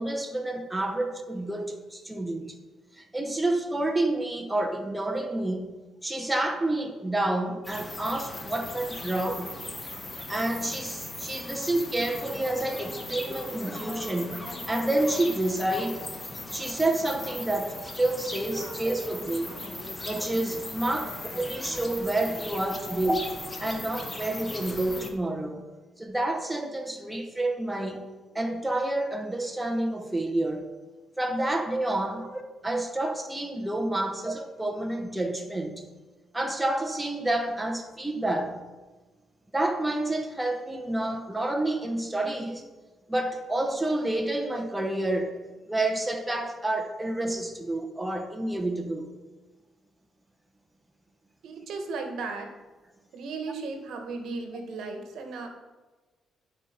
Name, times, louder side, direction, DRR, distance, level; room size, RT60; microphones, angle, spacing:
voice 1, 0.0-2.5 3.0-5.7 6.0-9.5 10.3-16.1 16.5-19.6 20.0-23.2 23.6-25.6 26.0-28.0 28.3-30.7 31.2-35.8 36.3-38.6 39.5-42.6 43.1-45.4 45.7-49.1, right 1 dB, 10° right, 3 dB, 1.1 m, -29 dB
sound 1, 7.6-25.1, left 2 dB, 20° left, 1.2 m, -38 dB
voice 2, 51.4-52.5 53.1-55.5, right 3 dB, 75° right, 4 dB, 1.3 m, -36 dB
11.0 x 5.0 x 4.3 m, 1.2 s
cardioid pair, 90°, 0 cm